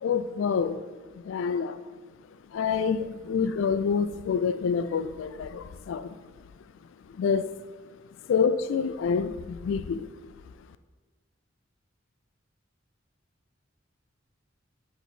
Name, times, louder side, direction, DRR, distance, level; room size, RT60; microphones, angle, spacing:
voice 1, 0.0-0.8 1.2-1.8 2.5-6.2 7.2-7.5 8.3-10.1, left 6 dB, 80° left, 12 dB, 0.3 m, -27 dB
8.0 x 3.0 x 4.2 m, 1.4 s
head